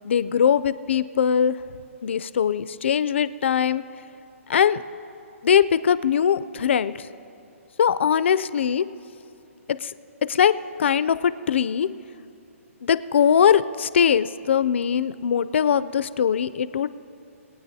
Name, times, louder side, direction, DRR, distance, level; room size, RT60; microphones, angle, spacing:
voice 1, 0.0-1.6 2.0-3.8 4.5-4.8 5.4-7.1 7.8-8.8 9.8-9.9 10.3-10.5 10.8-11.9 12.8-16.9, left 8 dB, 55° left, 14 dB, 0.4 m, -21 dB
22.5 x 8.9 x 2.7 m, 2.7 s
hypercardioid pair, 170°, 8 cm